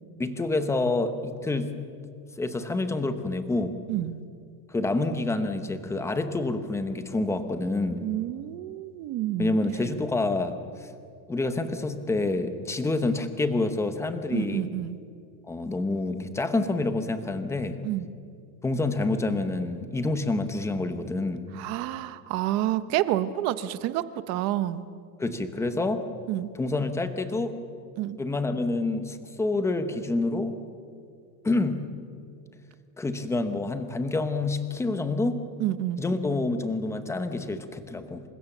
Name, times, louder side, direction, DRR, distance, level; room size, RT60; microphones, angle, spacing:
voice 1, 0.2-1.7 2.4-3.7 4.7-8.0 9.4-10.9 11.3-14.7 15.5-17.8 18.6-21.4 25.2-26.0 26.6-27.5 28.2-30.6 31.4-31.8 33.0-35.4 36.0-38.2, left 2 dB, 5° left, 9 dB, 0.9 m, -27 dB
voice 2, 8.0-9.6 14.3-15.0 17.8-18.1 21.5-24.9 26.3-26.5 28.0-28.2 35.6-36.0, right 13 dB, 35° right, 14 dB, 0.9 m, -29 dB
28.0 x 25.0 x 7.2 m, 2.4 s
supercardioid pair, 180°, 48 cm